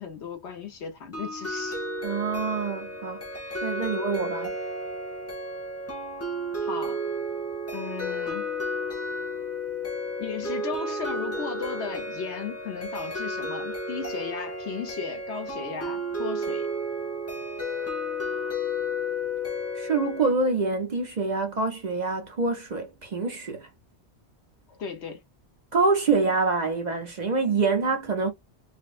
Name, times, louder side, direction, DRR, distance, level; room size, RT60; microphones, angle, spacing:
voice 1, 0.0-1.8 6.6-7.0 7.7-8.5 10.2-16.7 24.7-25.2, left 6 dB, 75° left, 1.2 m, -36 dB
sound 1, 1.1-20.3, equal, 15° left, 0.5 m, -32 dB
voice 2, 2.0-3.2 3.6-4.5 19.8-23.7 25.7-28.3, right 4 dB, 45° right, 0.7 m, -26 dB
4.0 x 2.2 x 2.5 m
omnidirectional pair, 1.1 m